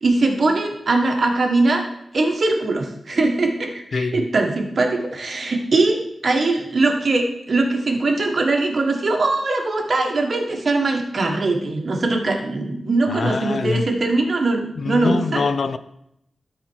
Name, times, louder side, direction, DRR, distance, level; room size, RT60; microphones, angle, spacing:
voice 1, 0.0-1.9 2.1-15.4, right 2 dB, 45° right, 1.4 m, -21 dB
voice 2, 3.9-4.2 13.1-13.9 14.8-15.8, left 4 dB, 55° left, 0.4 m, -24 dB
12.5 x 4.4 x 4.6 m
wide cardioid pair, 125°, 0 cm